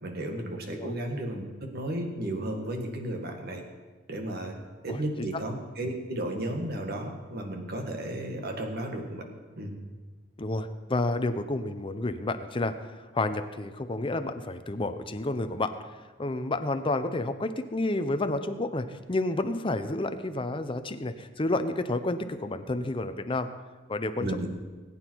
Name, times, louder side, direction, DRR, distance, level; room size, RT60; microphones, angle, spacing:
voice 1, 0.0-1.4 1.7-3.6 4.1-4.5 4.8-9.2 9.6-9.8 24.2-24.5, right 1 dB, 55° right, 3 dB, 1.8 m, -33 dB
voice 2, 4.9-5.3 10.4-15.7 16.2-23.5 23.9-24.5, left 2 dB, 25° left, 9 dB, 0.7 m, -30 dB
19.5 x 8.9 x 4.6 m, 1.4 s
head